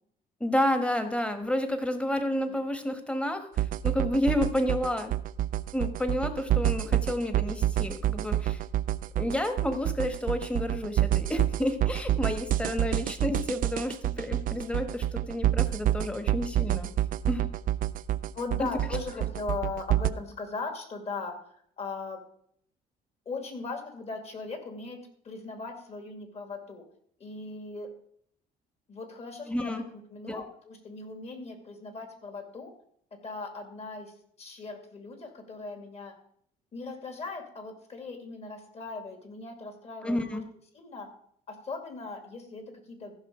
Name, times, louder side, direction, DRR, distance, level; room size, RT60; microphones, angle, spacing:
voice 1, 0.4-5.1 5.7-8.6 9.2-16.9 17.3-17.5 18.6-18.7 19.2-19.3 29.5-29.8 30.3-30.4 40.0-40.4, left 1 dB, 5° left, 8 dB, 1.3 m, -30 dB
sound 1, 3.6-20.1, right 12 dB, 55° right, 0.4 m, -28 dB
voice 2, 18.3-21.3 21.8-22.2 23.3-26.8 27.2-27.9 28.9-32.7 33.2-36.1 36.7-40.4 40.7-41.1 41.5-43.1, left 4 dB, 40° left, 5 dB, 2.4 m, -39 dB
14.5 x 5.8 x 5.0 m, 0.66 s
cardioid pair, 110°, 17 cm